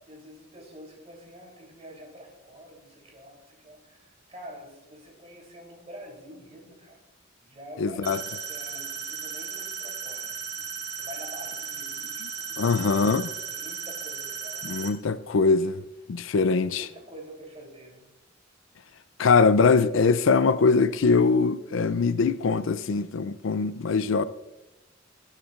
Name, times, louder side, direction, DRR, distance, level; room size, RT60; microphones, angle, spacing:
voice 1, 0.1-7.0 7.4-14.9 15.7-15.8 16.2-16.3 16.6-18.1, equal, 35° right, 3.4 m, -47 dB
voice 2, 7.8-8.2 12.6-13.3 14.6-15.8 16.1-16.9 19.2-24.2, left 4 dB, 75° left, 0.5 m, -22 dB
sound 1, 8.0-14.9, right 7 dB, 55° right, 1.7 m, -36 dB
18.5 x 10.0 x 2.5 m
head